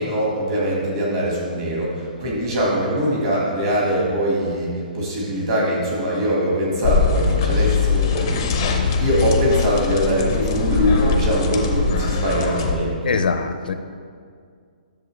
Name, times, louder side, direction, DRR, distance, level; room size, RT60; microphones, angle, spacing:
voice 1, 0.0-8.6 9.0-12.9, equal, 25° right, -4 dB, 1.7 m, -22 dB
sound 1, 6.8-12.7, left 5 dB, 25° left, 0.6 m, -21 dB
voice 2, 8.6-9.0 13.0-13.7, left 5 dB, 70° left, 9 dB, 0.5 m, -24 dB
10.5 x 6.8 x 3.2 m, 2.2 s
hypercardioid pair, 180°, 5 cm